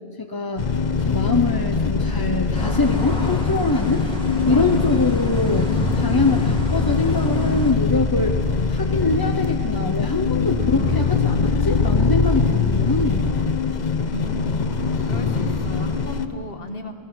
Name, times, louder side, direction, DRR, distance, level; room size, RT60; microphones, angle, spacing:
voice 1, 0.2-0.7 1.0-4.0 4.4-8.4 8.7-13.3, left 3 dB, 25° left, 4 dB, 0.7 m, -23 dB
sound 1, 0.6-16.3, left 5 dB, 45° left, 1.0 m, -22 dB
sound 2, 2.5-7.7, equal, 5° left, 2.2 m, -30 dB
sound 3, 2.8-3.4 5.4-6.4 10.2-11.2 14.5-15.8, left 2 dB, 85° left, 4.0 m, -30 dB
voice 2, 14.1-14.6 15.0-16.9, left 1 dB, 65° left, 5 dB, 1.8 m, -34 dB
27.5 x 19.0 x 6.1 m, 2.5 s
omnidirectional pair, 1.0 m